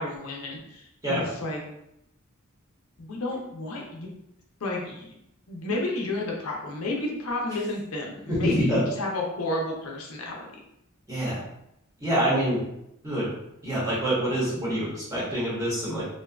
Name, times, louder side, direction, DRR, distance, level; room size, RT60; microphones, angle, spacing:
voice 1, 0.0-1.6 3.0-4.1 4.6-5.1 5.5-10.5, left 2 dB, 80° left, 0 dB, 0.5 m, -31 dB
voice 2, 8.3-8.8 11.1-11.4 12.0-12.6 13.0-13.3 13.6-16.0, equal, 15° right, -9 dB, 1.0 m, -26 dB
2.5 x 2.3 x 2.2 m, 0.81 s
head